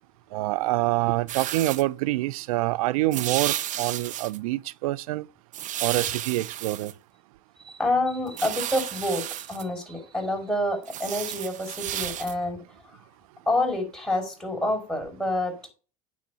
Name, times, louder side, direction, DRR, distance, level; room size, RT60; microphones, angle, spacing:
voice 1, 0.3-5.3 5.8-6.9, right 18 dB, 80° right, 0.5 m, -26 dB
sound 1, 1.3-1.8 3.1-4.4 5.5-6.9 8.3-9.6 10.8-12.3, right 12 dB, 45° right, 0.7 m, -32 dB
voice 2, 7.6-12.6 12.9-13.0 13.5-15.5, left 1 dB, 5° left, 4.8 m, -28 dB
9.5 x 3.8 x 6.9 m
hypercardioid pair, 85°, 18 cm